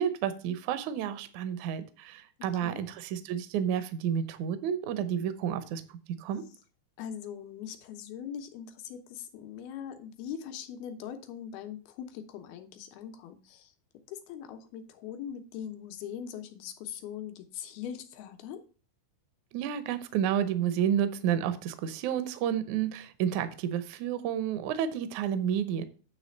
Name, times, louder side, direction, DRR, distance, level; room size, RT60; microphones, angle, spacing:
voice 1, 0.0-6.4 19.5-25.8, right 9 dB, 80° right, 11 dB, 1.7 m, -30 dB
voice 2, 7.0-13.7 14.1-18.6, left 9 dB, 85° left, 6 dB, 2.8 m, -41 dB
9.5 x 3.3 x 6.4 m, 0.38 s
omnidirectional pair, 4.3 m